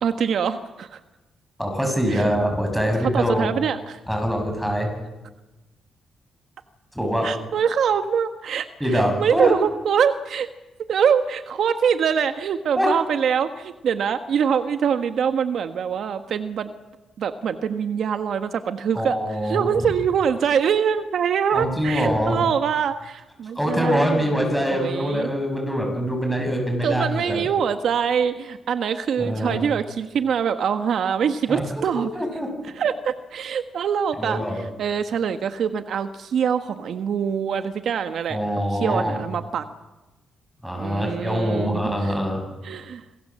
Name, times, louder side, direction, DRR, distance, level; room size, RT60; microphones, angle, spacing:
voice 1, 0.0-1.0 2.1-2.3 3.0-4.0 7.2-10.5 10.9-16.7 17.2-24.4 24.7-25.3 26.8-32.1 32.8-38.4 38.7-39.7 40.7-42.1 42.6-43.0, right 7 dB, 65° right, 9 dB, 1.3 m, -24 dB
voice 2, 1.6-3.5 4.1-4.9 6.9-7.3 8.8-9.5 12.8-12.9 18.9-19.7 21.5-22.4 23.6-27.4 29.2-29.6 31.5-31.6 31.9-32.5 34.2-34.6 38.3-39.2 40.6-42.4, equal, ahead, 3 dB, 7.7 m, -24 dB
27.5 x 23.0 x 7.6 m, 1.1 s
cardioid pair, 120°, 0 cm